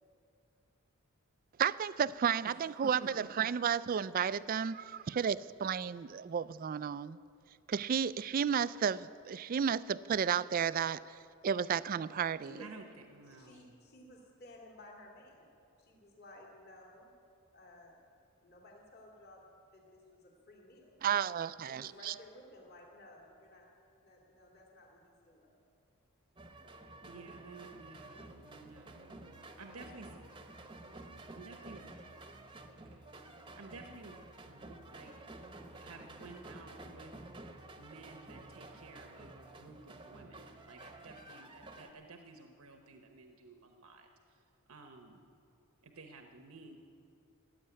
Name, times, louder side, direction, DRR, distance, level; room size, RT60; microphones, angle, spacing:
voice 1, 1.6-7.2 7.7-11.2 11.4-12.6 21.0-22.1, right 7 dB, 40° right, 17 dB, 0.3 m, -32 dB
voice 2, 2.8-3.5 12.6-13.7 27.0-30.1 31.3-31.8 32.7-33.1 33.6-34.2 34.4-35.1 35.7-37.1 37.8-44.4 44.7-45.2 45.8-46.8, right 3 dB, 75° right, 4 dB, 1.0 m, -53 dB
voice 3, 12.4-12.9 13.3-15.5 15.8-17.1 17.5-18.0 18.4-19.4 19.7-20.9 21.6-23.6 24.0-25.5, left 1 dB, 45° left, -1 dB, 2.4 m, -56 dB
sound 1, 26.4-41.9, right 2 dB, 20° right, 0.9 m, -51 dB
15.5 x 8.7 x 10.0 m, 2.5 s
head